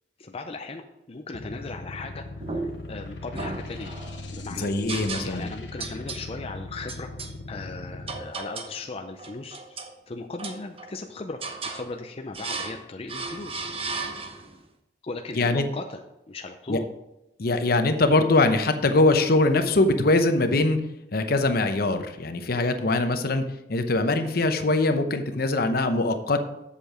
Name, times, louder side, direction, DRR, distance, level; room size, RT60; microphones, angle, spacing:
voice 1, 0.2-4.0 4.3-7.1 7.5-11.4 11.6-13.7 15.0-16.0 16.3-16.9, left 3 dB, 35° left, 4 dB, 0.5 m, -38 dB
sound 1, 1.3-8.2, left 2 dB, 85° left, 1.1 m, -39 dB
sound 2, 2.4-2.9 3.3-4.2 4.9-5.5 5.8-6.3 6.9-7.3 8.1-8.8 9.2-9.9 10.4-11.0 11.4-11.9 12.3-12.8 13.1-14.6, right 3 dB, 35° right, 0.9 m, -35 dB
voice 2, 4.6-5.5 15.4-15.7 16.7-16.8 17.4-20.8 21.1-23.4 23.7-26.4, left 2 dB, 60° left, 8 dB, 0.8 m, -22 dB
8.0 x 6.9 x 4.9 m, 0.92 s
head